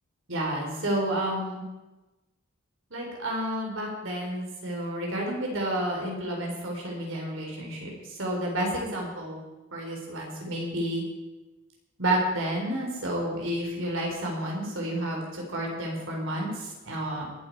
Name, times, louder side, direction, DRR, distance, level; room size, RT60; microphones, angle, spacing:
voice 1, 0.3-1.6 2.9-9.4 9.7-11.0 12.0-17.3, right 1 dB, 65° right, -1 dB, 4.0 m, -30 dB
21.5 x 8.4 x 4.8 m, 1.1 s
head